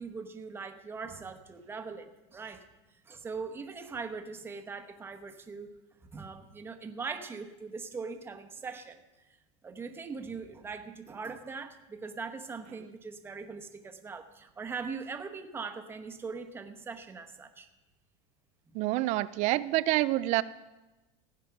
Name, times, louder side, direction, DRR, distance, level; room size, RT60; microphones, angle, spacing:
voice 1, 0.0-2.6 3.1-5.7 6.1-9.0 9.6-17.7 18.7-18.8, right 4 dB, 15° right, 6 dB, 1.0 m, -41 dB
voice 2, 18.7-20.4, right 17 dB, 45° right, 16 dB, 0.4 m, -27 dB
16.0 x 8.9 x 5.9 m, 1.1 s
supercardioid pair, 155°, 17 cm